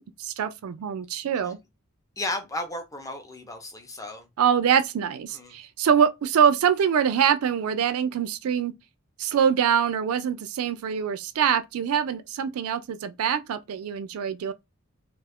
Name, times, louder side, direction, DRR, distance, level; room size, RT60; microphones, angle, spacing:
voice 1, 0.0-1.6 4.4-8.7 9.2-14.5, right 8 dB, 75° right, 0.4 m, -24 dB
voice 2, 2.2-4.3 5.3-5.6, left 1 dB, 15° left, 0.6 m, -34 dB
2.4 x 2.3 x 3.4 m
head